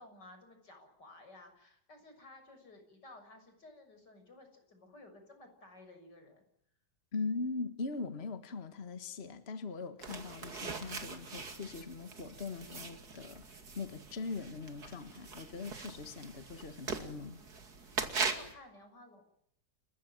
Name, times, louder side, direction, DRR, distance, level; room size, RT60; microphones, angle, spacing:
voice 1, 0.0-6.4 15.8-16.0 17.8-19.2, left 2 dB, 90° left, 6 dB, 7.2 m, -55 dB
voice 2, 7.1-17.4, left 4 dB, 40° left, 10 dB, 1.8 m, -41 dB
sound 1, 10.0-18.5, right 4 dB, 65° right, 3.0 m, -41 dB
30.0 x 15.5 x 9.1 m, 0.75 s
omnidirectional pair, 1.8 m